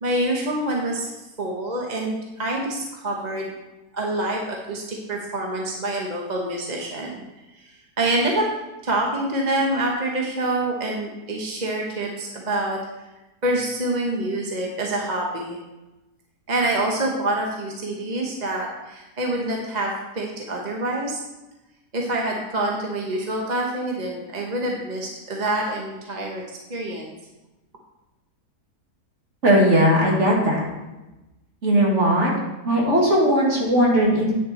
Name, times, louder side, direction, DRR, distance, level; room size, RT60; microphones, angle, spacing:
voice 1, 0.0-1.1 1.4-3.5 3.9-7.2 8.0-8.5 8.8-12.8 13.4-15.6 16.5-21.2 21.9-26.4 26.7-27.1, right 1 dB, 30° right, -1 dB, 1.0 m, -26 dB
voice 2, 29.4-30.6 31.6-32.3 32.7-34.3, equal, 45° right, -3 dB, 2.3 m, -18 dB
9.1 x 6.8 x 4.2 m, 1.0 s
omnidirectional pair, 1.7 m